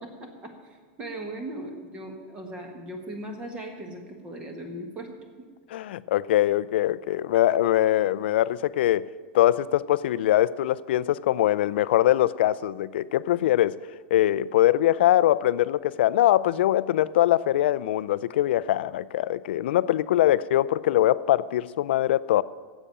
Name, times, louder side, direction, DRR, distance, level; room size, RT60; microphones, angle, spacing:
voice 1, 0.0-0.5 1.0-5.1, right 1 dB, 15° right, 3 dB, 1.5 m, -38 dB
voice 2, 5.7-9.1 9.3-13.8 14.1-22.4, left 13 dB, 70° left, 17 dB, 0.4 m, -22 dB
10.0 x 8.1 x 8.6 m, 1.5 s
supercardioid pair, 170°, 6 cm